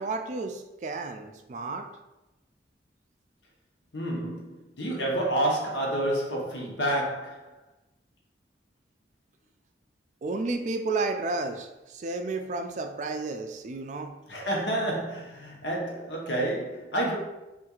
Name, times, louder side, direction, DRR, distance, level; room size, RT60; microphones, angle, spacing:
voice 1, 0.0-1.9 10.2-14.1, right 3 dB, 45° right, 0.3 m, -32 dB
voice 2, 3.9-7.5 14.3-17.2, right 1 dB, 80° left, 1.0 m, -29 dB
5.6 x 2.5 x 2.4 m
head